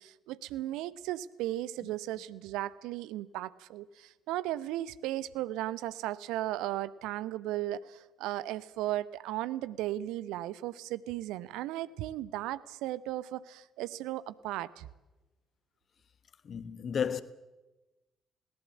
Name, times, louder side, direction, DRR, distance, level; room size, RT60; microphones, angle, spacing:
voice 1, 0.0-14.9, right 14 dB, 65° right, 0.7 m, -36 dB
voice 2, 16.4-17.2, left 7 dB, 45° left, 1.2 m, -32 dB
20.0 x 18.5 x 8.4 m
figure-of-eight pair, 45°, 0 cm